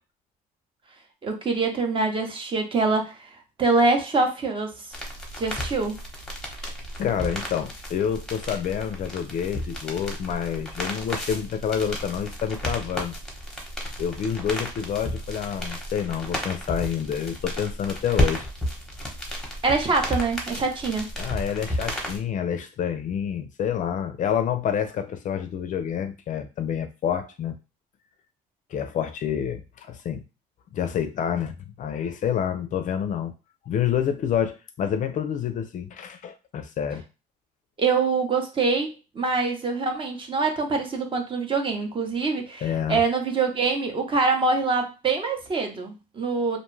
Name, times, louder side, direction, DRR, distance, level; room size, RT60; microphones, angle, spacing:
voice 1, 1.2-3.3 3.6-4.8 5.4-6.0 19.6-21.1 37.8-38.9 39.1-46.6, right 4 dB, 30° right, 4 dB, 0.7 m, -24 dB
sound 1, 4.9-22.2, equal, 5° left, 0.9 m, -32 dB
voice 2, 7.0-13.1 14.0-18.5 21.2-27.6 28.7-30.2 30.7-33.3 33.7-37.0 42.6-43.0, left 8 dB, 50° left, 9 dB, 0.4 m, -28 dB
2.5 x 2.2 x 3.1 m, 0.29 s
cardioid pair, 110°, 17 cm